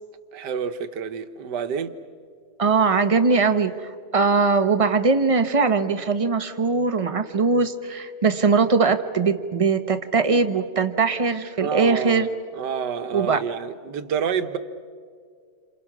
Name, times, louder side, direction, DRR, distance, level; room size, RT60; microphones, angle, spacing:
voice 1, 0.3-1.9 11.6-12.3 12.5-14.6, right 7 dB, 75° right, 1.7 m, -28 dB
voice 2, 2.6-12.3 13.1-13.4, right 4 dB, 25° right, 0.8 m, -21 dB
29.0 x 27.0 x 6.1 m
omnidirectional pair, 1.9 m